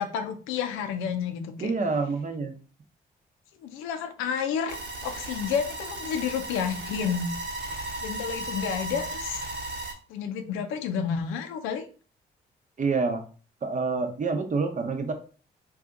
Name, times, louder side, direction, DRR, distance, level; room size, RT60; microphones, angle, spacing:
voice 1, 0.0-1.7 3.6-7.3 8.0-9.4 10.1-11.9, left 7 dB, 85° left, 7 dB, 0.5 m, -30 dB
voice 2, 1.6-2.5 12.8-13.2 13.6-15.1, right 4 dB, 40° right, 7 dB, 0.8 m, -27 dB
sound 1, 4.7-9.9, right 2 dB, 55° right, 1.1 m, -35 dB
2.7 x 2.3 x 3.7 m, 0.38 s
supercardioid pair, 55°, 20 cm